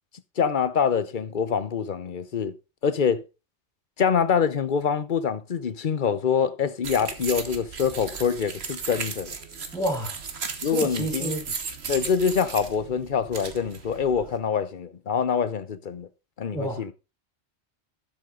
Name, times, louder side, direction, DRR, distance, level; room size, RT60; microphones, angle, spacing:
voice 1, 0.4-2.5 2.8-3.2 4.0-9.3 10.6-11.3 11.9-16.1 16.4-16.9, left 6 dB, 45° left, 0.9 m, -25 dB
sound 1, 6.8-14.4, right 5 dB, 60° right, 1.5 m, -36 dB
voice 2, 9.7-10.1 10.7-11.4 16.5-16.8, right 1 dB, 5° left, 4.4 m, -29 dB
12.0 x 6.6 x 3.9 m
omnidirectional pair, 1.2 m